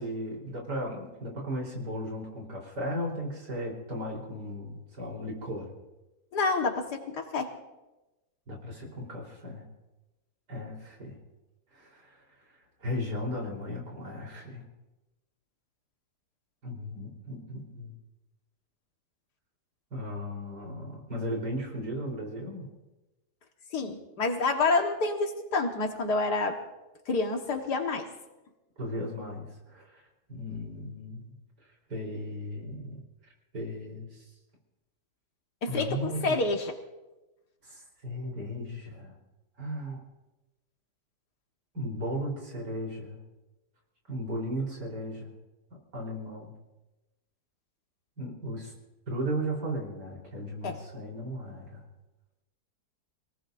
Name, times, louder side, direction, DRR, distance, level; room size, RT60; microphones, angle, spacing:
voice 1, 0.0-5.7 8.5-9.7 10.5-11.2 11.7-12.2 12.8-14.6 16.6-17.9 19.9-22.7 28.8-30.0 30.3-31.3 31.9-33.0 33.5-34.2 35.7-36.4 37.6-39.1 39.6-40.0 41.7-43.2 44.1-45.3 45.9-46.5 48.2-48.7 49.1-51.8, equal, 85° right, -1 dB, 4.6 m, -36 dB
voice 2, 6.3-7.5 23.7-26.6 27.1-28.1 35.6-36.8 50.6-50.8, left 3 dB, 75° left, 4 dB, 2.1 m, -28 dB
27.0 x 18.5 x 2.6 m, 1.1 s
omnidirectional pair, 1.8 m